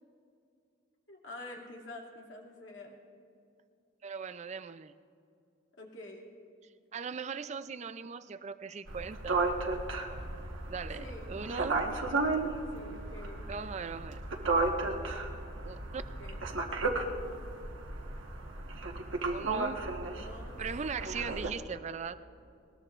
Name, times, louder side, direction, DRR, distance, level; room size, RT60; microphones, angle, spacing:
voice 1, 1.1-3.0 5.8-6.3 11.0-13.5 15.3-15.4 16.2-16.5 20.1-20.6, left 2 dB, 70° left, -2 dB, 2.5 m, -48 dB
voice 2, 4.0-4.9 6.9-9.4 10.7-11.8 13.5-14.2 15.6-16.0 19.3-19.9 20.6-22.2, right 5 dB, 35° right, 13 dB, 0.4 m, -39 dB
sound 1, 8.9-21.5, right 3 dB, 80° right, 1.3 m, -34 dB
20.5 x 20.0 x 2.5 m, 2.4 s
head